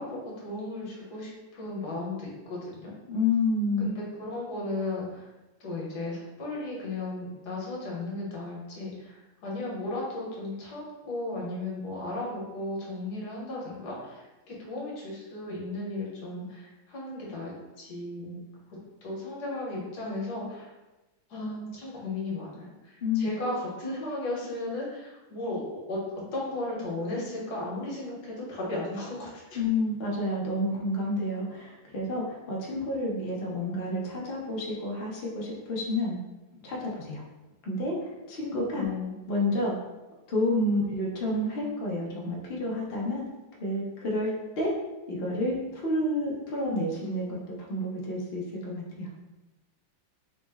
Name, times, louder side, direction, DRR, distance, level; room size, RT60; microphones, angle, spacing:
voice 1, 0.0-2.9 3.8-5.3 5.6-18.4 19.0-20.7 21.3-25.6 25.9-26.0 26.3-29.6 38.7-39.1, left 2 dB, 60° left, -4 dB, 1.4 m, -35 dB
voice 2, 3.1-3.9 23.0-23.3 29.5-36.2 36.6-37.2 37.6-38.9 39.3-39.8 40.3-43.3 43.6-44.7 45.1-49.1, left 1 dB, 85° left, -3 dB, 0.5 m, -29 dB
4.0 x 2.1 x 3.4 m, 1.1 s
omnidirectional pair, 2.1 m